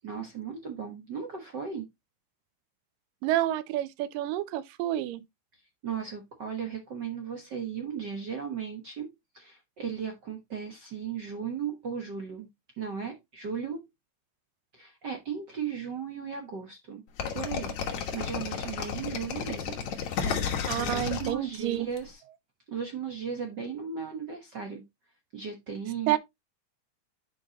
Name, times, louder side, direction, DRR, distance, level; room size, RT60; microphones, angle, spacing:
voice 1, 0.0-1.9 5.8-12.5 12.8-13.9 14.7-17.0 17.3-20.4 20.8-22.2 22.7-24.8 25.3-26.2, right 7 dB, 65° right, 1.0 m, -36 dB
voice 2, 3.2-5.2 20.7-21.9 26.1-26.2, right 14 dB, 85° right, 2.3 m, -29 dB
sound 1, 17.2-22.0, left 7 dB, 60° left, 2.5 m, -32 dB
9.3 x 5.4 x 2.9 m
omnidirectional pair, 3.8 m